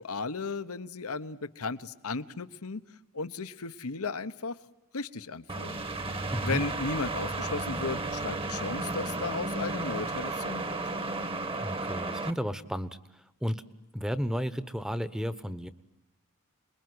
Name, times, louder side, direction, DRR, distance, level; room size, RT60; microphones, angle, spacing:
voice 1, 0.0-2.8 3.1-4.6 4.9-5.8 6.4-10.8, left 4 dB, 80° left, 13 dB, 1.0 m, -35 dB
sound 1, 5.5-12.3, right 2 dB, 25° right, 1.3 m, -33 dB
voice 2, 6.3-6.6 11.6-13.0 13.4-13.6 13.9-15.7, equal, 5° right, 13 dB, 1.0 m, -32 dB
28.5 x 21.5 x 9.6 m, 0.97 s
head